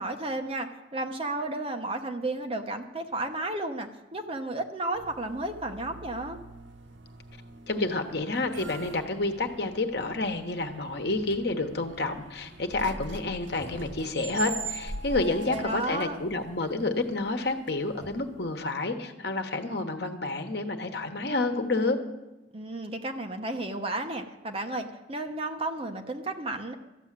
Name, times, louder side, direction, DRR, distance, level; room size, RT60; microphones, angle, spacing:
voice 1, 0.0-6.4 15.5-16.2 22.5-26.7, right 2 dB, 30° right, 4 dB, 1.0 m, -33 dB
sound 1, 4.9-18.6, right 3 dB, 90° right, 0.8 m, -43 dB
voice 2, 7.7-22.0, left 2 dB, 60° left, 6 dB, 1.2 m, -29 dB
13.5 x 9.0 x 7.5 m, 1.1 s
head